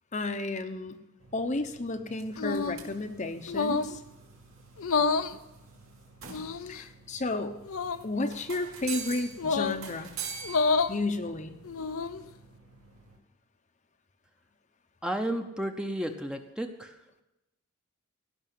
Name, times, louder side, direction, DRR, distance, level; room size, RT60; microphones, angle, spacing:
voice 1, 0.1-1.0 1.3-4.0 6.7-7.6 8.0-10.2 10.9-11.6, left 2 dB, 35° left, 7 dB, 0.8 m, -32 dB
sound 1, 1.2-13.2, right 6 dB, 65° right, 2.7 m, -46 dB
sound 2, 2.4-2.9 3.5-4.0 4.8-5.3 6.3-6.8 7.7-8.0 9.4-9.8 10.4-11.0 11.6-12.2, left 4 dB, 70° left, 0.6 m, -28 dB
voice 2, 15.0-17.0, right 1 dB, 5° right, 5 dB, 0.8 m, -32 dB
17.0 x 6.1 x 9.2 m, 0.96 s
head